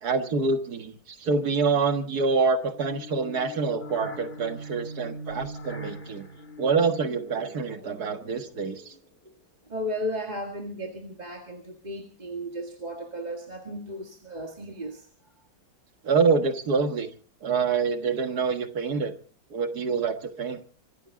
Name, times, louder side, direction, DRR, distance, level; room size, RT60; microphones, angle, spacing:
voice 1, 0.0-6.3 6.6-8.9 16.0-17.1 17.4-19.1 19.5-20.6, right 4 dB, 50° right, 7 dB, 2.0 m, -26 dB
sound 1, 2.7-9.1, equal, 30° left, 2.8 m, -42 dB
voice 2, 9.7-15.1, equal, 20° right, 2 dB, 1.9 m, -35 dB
25.0 x 13.5 x 3.8 m, 0.43 s
omnidirectional pair, 2.2 m